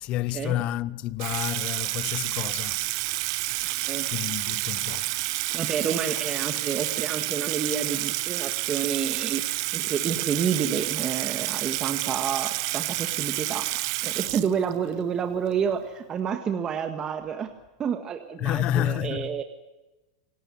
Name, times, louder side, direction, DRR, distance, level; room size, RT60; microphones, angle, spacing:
voice 1, 0.0-2.8 4.1-5.1 18.4-19.4, left 13 dB, 35° left, 0.8 m, -29 dB
Water tap faucet / Sink (filling or washing), 1.2-14.9, right 20 dB, 50° right, 1.1 m, -29 dB
voice 2, 5.5-13.7 14.0-17.5 17.8-19.4, right 7 dB, 20° right, 1.7 m, -29 dB
27.5 x 18.0 x 9.8 m
supercardioid pair, 160°, 3 cm